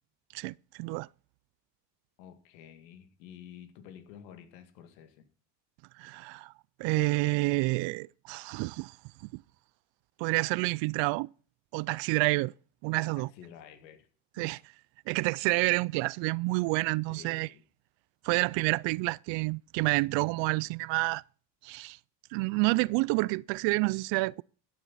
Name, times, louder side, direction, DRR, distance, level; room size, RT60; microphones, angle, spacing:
voice 1, 0.3-1.1 6.0-6.5 6.8-9.0 9.3-9.4 10.2-11.3 11.7-12.5 12.8-13.3 14.4-14.6 15.1-17.5 18.2-21.2 21.6-22.0 22.3-24.4, right 24 dB, 65° right, 0.5 m, -29 dB
voice 2, 2.2-5.3 13.1-14.1 14.4-14.6 17.1-17.6, left 9 dB, 90° left, 2.2 m, -50 dB
14.5 x 9.0 x 4.2 m
supercardioid pair, 100°, 50 cm